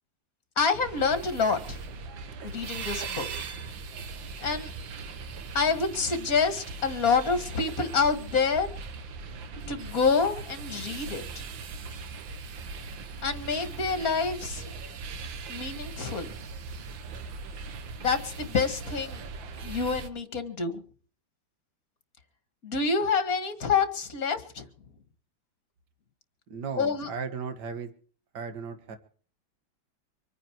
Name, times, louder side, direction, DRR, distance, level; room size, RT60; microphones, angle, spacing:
voice 1, 0.6-1.8 2.4-3.3 4.4-4.7 5.5-8.7 9.7-11.4 13.2-14.6 15.5-16.3 18.0-19.2 19.6-20.8 22.6-24.7 26.8-27.1, left 5 dB, 45° left, 10 dB, 2.4 m, -27 dB
sound 1, 0.8-20.1, right 4 dB, 75° right, 1.9 m, -39 dB
voice 2, 26.5-27.9 28.3-29.0, right 5 dB, 60° right, 9 dB, 2.2 m, -36 dB
26.0 x 9.4 x 4.6 m, 0.44 s
omnidirectional pair, 2.1 m